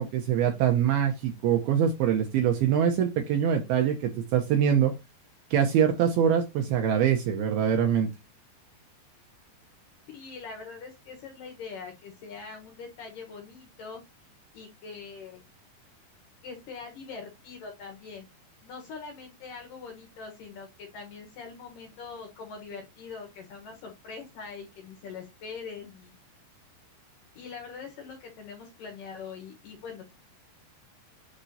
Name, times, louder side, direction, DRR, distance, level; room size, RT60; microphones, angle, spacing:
voice 1, 0.0-4.9 5.5-8.1, right 8 dB, 75° right, 4 dB, 2.3 m, -24 dB
voice 2, 10.1-14.0 14.5-15.4 16.4-18.3 18.6-26.1 27.4-30.1, left 5 dB, 65° left, 2 dB, 2.4 m, -43 dB
9.9 x 3.7 x 2.8 m, 0.22 s
omnidirectional pair, 5.2 m